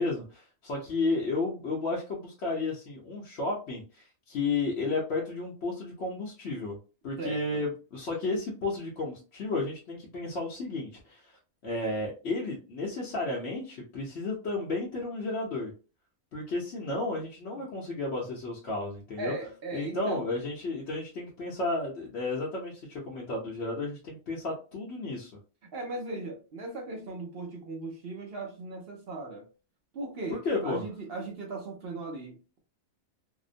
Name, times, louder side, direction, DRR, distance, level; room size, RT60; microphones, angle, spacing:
voice 1, 0.0-6.7 7.0-11.3 11.6-15.7 16.3-19.3 19.7-25.3 30.3-30.8, left 3 dB, 55° left, 0.9 m, -32 dB
voice 2, 7.2-7.6 19.2-20.3 25.7-29.5 29.9-32.6, right 2 dB, 55° right, 0.7 m, -38 dB
2.8 x 2.0 x 2.5 m
omnidirectional pair, 1.5 m